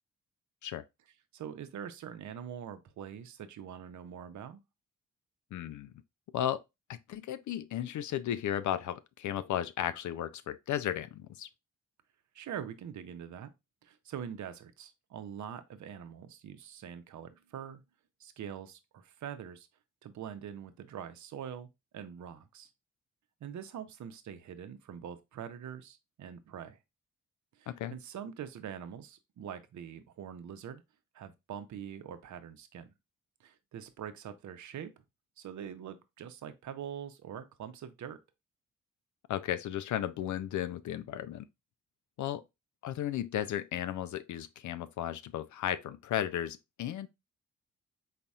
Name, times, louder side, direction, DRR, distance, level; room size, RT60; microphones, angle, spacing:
voice 1, 1.3-4.6 12.3-13.5 13.8-17.8 18.2-19.7 20.0-22.7 23.4-26.8 27.6-30.8 31.1-32.9 33.4-35.0 35.4-38.2, right 8 dB, 55° right, 0.7 m, -44 dB
voice 2, 5.5-5.9 6.3-6.6 6.9-11.5 27.7-28.0 39.3-41.5 42.2-42.4 42.8-47.1, left 11 dB, 60° left, 0.5 m, -34 dB
4.1 x 4.0 x 2.3 m
hypercardioid pair, 45°, 35 cm